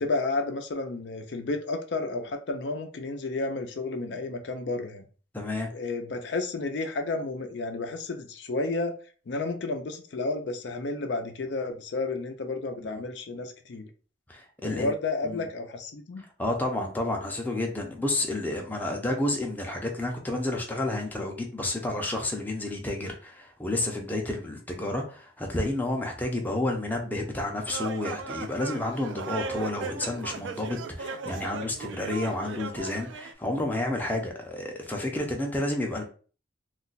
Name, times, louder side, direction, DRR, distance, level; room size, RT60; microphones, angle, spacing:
voice 1, 0.0-5.0 5.7-8.9 9.3-13.9 14.6-16.2, left 3 dB, 70° left, 0.5 m, -31 dB
voice 2, 5.3-5.7 12.8-13.0 14.3-14.9 15.2-15.4 16.4-36.0, left 1 dB, 10° left, 0.5 m, -30 dB
sound 1, 27.7-33.3, right 5 dB, 90° right, 0.4 m, -37 dB
2.4 x 2.1 x 3.9 m
head